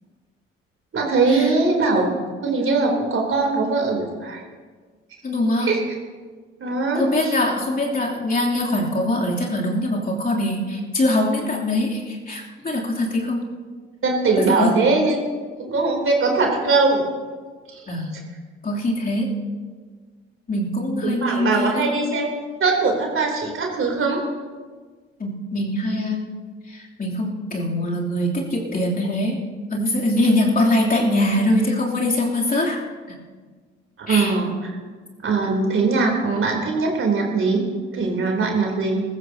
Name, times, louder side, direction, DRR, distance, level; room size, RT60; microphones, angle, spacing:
voice 1, 0.9-2.1 2.4-4.4 5.7-5.8 6.6-7.3 14.0-15.2 15.6-17.1 17.7-17.9 21.0-22.3 22.6-24.2 34.0-34.5 35.2-37.6 37.9-39.0, right 3 dB, 40° right, 1 dB, 3.5 m, -21 dB
voice 2, 5.2-5.7 6.9-13.4 14.3-14.7 17.9-18.1 18.6-19.3 20.5-21.8 25.2-26.3 26.7-29.4 29.7-32.8 33.1-33.2 34.1-34.3, left 1 dB, 30° left, -3 dB, 3.1 m, -23 dB
22.0 x 14.0 x 2.9 m, 1.5 s
figure-of-eight pair, 45°, 31 cm